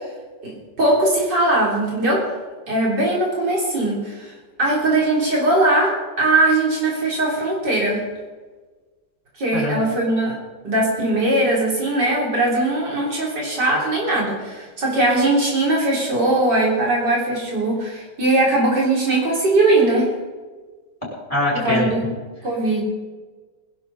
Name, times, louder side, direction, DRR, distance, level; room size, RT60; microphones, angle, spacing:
voice 1, 0.8-2.2 2.7-4.3 4.6-8.0 9.4-10.4 10.6-20.1 21.6-22.0 22.4-22.8, right 2 dB, 75° right, -3 dB, 4.2 m, -20 dB
voice 2, 21.3-21.9, left 1 dB, 20° left, -5 dB, 6.1 m, -22 dB
21.0 x 11.5 x 4.2 m, 1.3 s
omnidirectional pair, 1.9 m